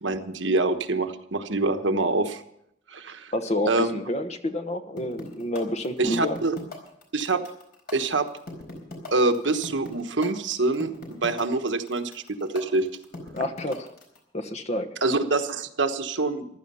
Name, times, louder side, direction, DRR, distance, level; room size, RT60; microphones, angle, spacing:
voice 1, 0.0-2.4 2.9-3.3 3.7-4.0 6.0-6.6 7.1-7.4 7.9-8.3 9.1-12.9 15.0-16.6, right 3 dB, 85° right, 7 dB, 1.2 m, -25 dB
voice 2, 3.3-6.4 13.3-13.9 14.3-14.9, left 1 dB, 40° left, 8 dB, 1.1 m, -29 dB
sound 1, 5.0-14.2, left 2 dB, 55° left, 4.3 m, -40 dB
15.0 x 12.5 x 5.6 m, 0.74 s
head